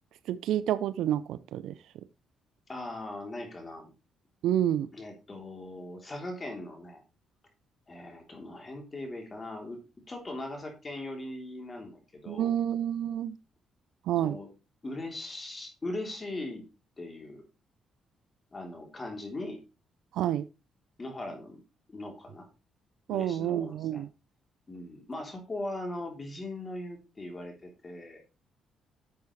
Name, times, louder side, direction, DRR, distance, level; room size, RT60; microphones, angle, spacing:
voice 1, 0.3-1.7 4.4-4.9 12.3-13.3 14.1-14.4 20.1-20.5 23.1-24.1, right 11 dB, 85° right, 0.5 m, -29 dB
voice 2, 2.7-3.9 4.9-7.0 7.9-9.8 10.1-12.6 14.2-14.5 14.8-16.6 17.0-17.4 18.5-19.6 21.0-21.6 21.9-22.5 23.1-24.0 24.7-28.2, left 2 dB, 30° left, 3.3 m, -39 dB
11.0 x 7.0 x 3.2 m
cardioid pair, 90°, 0 cm